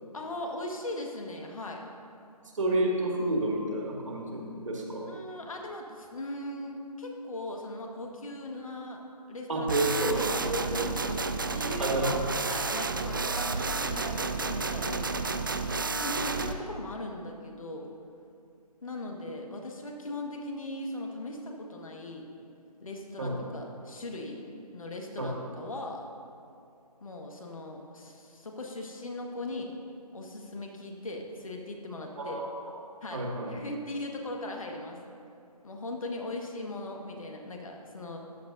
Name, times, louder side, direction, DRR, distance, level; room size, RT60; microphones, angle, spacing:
voice 1, 0.1-1.8 5.1-9.0 9.3-9.7 9.9-11.3 11.5-12.2 12.5-15.4 16.0-17.9 18.8-22.3 22.8-24.4 24.7-26.0 27.0-29.7 30.1-32.4 33.0-35.0 35.6-38.2, left 1 dB, 60° left, 2 dB, 1.6 m, -39 dB
voice 2, 2.5-5.1 9.5-10.8 11.8-12.2 23.2-23.4 25.2-25.3 32.2-32.8 33.1-33.5, right 2 dB, 55° right, -1 dB, 2.0 m, -30 dB
sound 1, 9.7-16.5, right 3 dB, 35° right, 0.4 m, -31 dB
14.0 x 10.5 x 2.7 m, 2.5 s
figure-of-eight pair, 155°, 20 cm